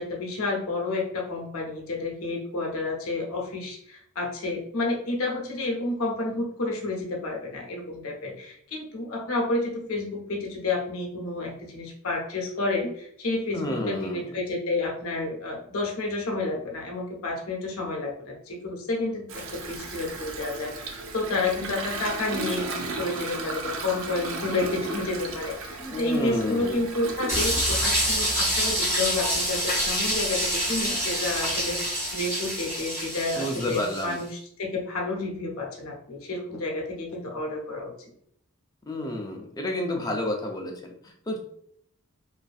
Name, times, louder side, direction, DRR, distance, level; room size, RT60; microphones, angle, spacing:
voice 1, 0.0-38.1, left 2 dB, 80° left, 1 dB, 0.6 m, -30 dB
voice 2, 13.5-14.3 25.8-26.8 33.4-34.2 38.9-41.4, left 1 dB, 15° left, 2 dB, 0.4 m, -30 dB
Toilet flush, 19.3-32.7, right 3 dB, 65° right, 0.4 m, -36 dB
sound 1, 27.3-34.1, equal, 10° right, 1.3 m, -27 dB
2.5 x 2.5 x 2.3 m, 0.67 s
head